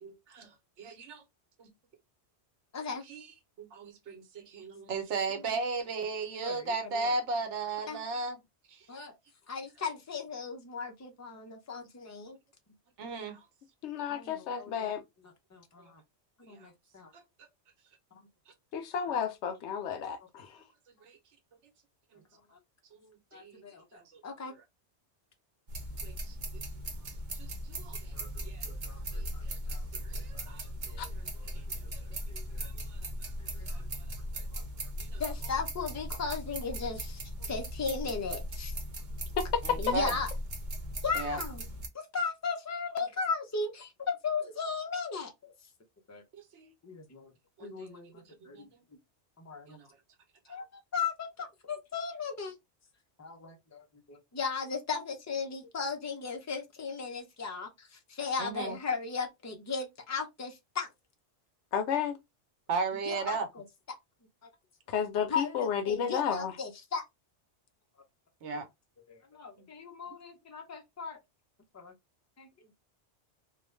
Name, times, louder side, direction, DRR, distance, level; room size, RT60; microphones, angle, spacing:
voice 1, 0.0-0.5 0.8-1.2 1.6-1.7 3.1-3.3 3.6-8.4 8.7-8.9 13.0-13.5 16.6-16.7 17.1-17.5 22.9-23.6 23.9-24.2 26.0-26.6 27.3-28.1 28.4-28.6 29.1-29.5 29.9-31.0 32.1-32.2 32.6-33.0 33.7-33.8 34.3-34.4 35.0-35.2 39.6-40.2 41.1-41.4 46.3-46.7 47.6-48.1 48.5-48.8 49.7-49.9 58.4-58.8 62.7-63.5 68.4-68.7, right 3 dB, 80° right, 1.1 m, -36 dB
voice 2, 6.4-7.1 7.9-8.0 8.9-9.2 9.5-12.4 14.1-14.9 15.5-16.0 16.5-17.1 23.3-24.5 28.1-29.9 30.3-30.5 30.8-31.1 31.4-31.5 32.3-32.7 33.5-33.8 34.5-34.6 35.2-37.2 37.5-38.7 39.8-40.3 41.0-41.6 41.9-45.5 46.1-46.2 46.8-47.3 47.6-48.7 49.4-49.8 50.5-52.5 53.2-60.9 63.1-63.6 65.3-67.0 69.1-71.2 71.7-71.9 72.4-72.5, left 5 dB, 25° left, 0.4 m, -37 dB
voice 3, 13.8-15.0 18.7-20.6 31.0-31.1 39.4-39.9 61.7-62.2 64.9-66.6, left 7 dB, 80° left, 0.8 m, -31 dB
sound 1, 25.7-41.9, equal, 45° right, 0.8 m, -38 dB
2.4 x 2.2 x 3.0 m
omnidirectional pair, 1.2 m